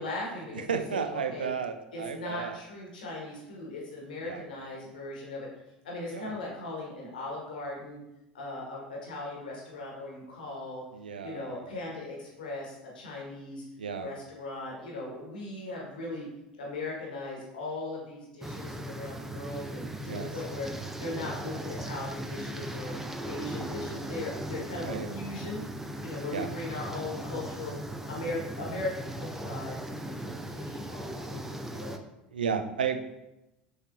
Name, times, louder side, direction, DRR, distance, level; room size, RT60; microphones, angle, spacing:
voice 1, 0.0-1.5 1.9-5.5 5.8-8.0 8.3-10.8 11.2-13.6 14.0-16.3 16.6-20.7 21.0-22.9 23.2-25.6 26.0-27.7 28.1-32.0, left 2 dB, 70° left, -3 dB, 1.2 m, -38 dB
voice 2, 0.5-2.6 4.2-4.4 6.1-6.3 10.9-11.8 13.8-14.1 20.1-20.3 24.8-25.1 26.3-26.5 32.3-33.0, right 6 dB, 75° right, 7 dB, 0.3 m, -33 dB
sound 1, 18.4-32.0, right 1 dB, 5° right, 0.4 m, -38 dB
6.4 x 3.3 x 2.4 m, 0.92 s
figure-of-eight pair, 75°, 5 cm